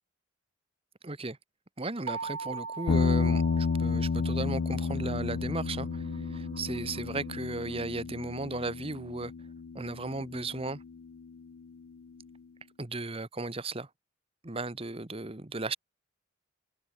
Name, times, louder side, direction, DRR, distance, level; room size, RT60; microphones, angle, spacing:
voice 1, 1.0-1.4 1.8-9.3 9.7-10.8 12.8-13.9 14.4-15.8, right 2 dB, 25° right, 1.1 m, -36 dB
sound 1, 2.1-4.8, right 4 dB, 85° right, 2.1 m, -40 dB
sound 2, 2.6-7.9, right 1 dB, 55° right, 3.4 m, -51 dB
sound 3, 2.9-11.2, left 5 dB, 80° left, 0.5 m, -31 dB
head